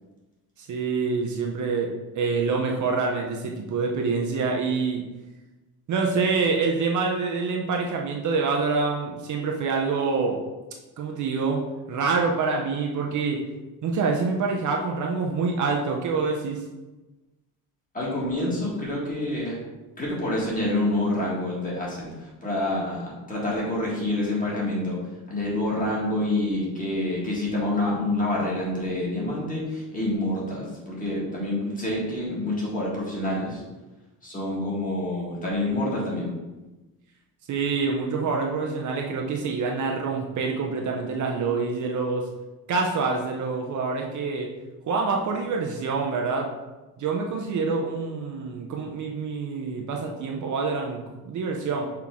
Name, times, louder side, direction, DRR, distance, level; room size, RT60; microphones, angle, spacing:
voice 1, 0.6-5.0 5.9-10.4 11.0-11.6 11.9-13.4 13.8-16.6 37.5-42.3 42.7-44.5 44.9-46.5 47.0-51.9, right 4 dB, 50° right, 1 dB, 0.7 m, -26 dB
voice 2, 17.9-19.6 20.0-25.0 25.3-33.6 34.2-36.3, left 1 dB, 20° left, -5 dB, 1.8 m, -27 dB
5.9 x 4.5 x 3.6 m, 1.1 s
cardioid pair, 165°, 39 cm